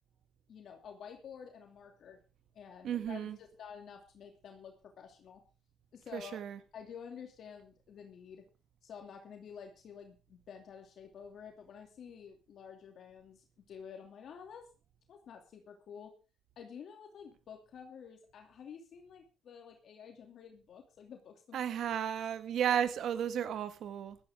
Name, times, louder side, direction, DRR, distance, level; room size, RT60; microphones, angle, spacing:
voice 1, 0.5-2.2 2.5-5.4 5.9-6.4 6.7-8.5 8.8-14.7 15.1-16.1 16.6-21.6, left 7 dB, 65° left, 2.7 m, -50 dB
voice 2, 2.8-3.4 6.1-6.6 21.5-24.2, right 9 dB, 70° right, 1.7 m, -33 dB
16.0 x 13.0 x 3.7 m
cardioid pair, 90°, 0 cm